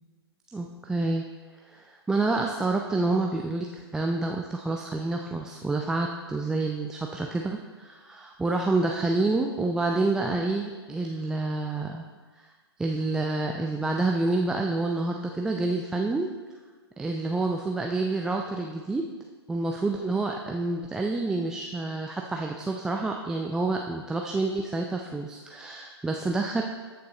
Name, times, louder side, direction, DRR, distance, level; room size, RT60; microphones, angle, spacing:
voice 1, 0.5-1.3 1.7-12.1 12.4-12.5 12.8-16.3 17.0-19.0 19.5-26.6, right 2 dB, 5° right, 1 dB, 0.3 m, -28 dB
13.5 x 6.8 x 3.1 m, 1.4 s
figure-of-eight pair, 115°, 14 cm